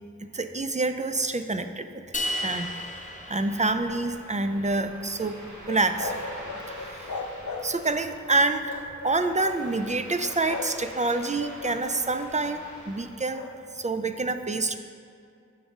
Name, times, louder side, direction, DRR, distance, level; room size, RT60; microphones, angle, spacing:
voice 1, 0.3-2.0 2.4-2.7 3.3-5.4 5.7-6.1 6.8-7.1 7.6-8.8 9.0-14.8, right 2 dB, 25° right, 9 dB, 0.4 m, -27 dB
sound 1, 2.1-4.4, left 1 dB, 25° left, 0.7 m, -34 dB
Ocean, 2.2-13.1, right 1 dB, 75° right, 1.3 m, -46 dB
sound 2, 5.7-8.0 8.6-9.6 10.2-10.8 11.1-12.5 13.3-13.6, left 3 dB, 70° left, 0.6 m, -37 dB
7.1 x 3.5 x 6.4 m, 2.4 s
wide cardioid pair, 45°, 30 cm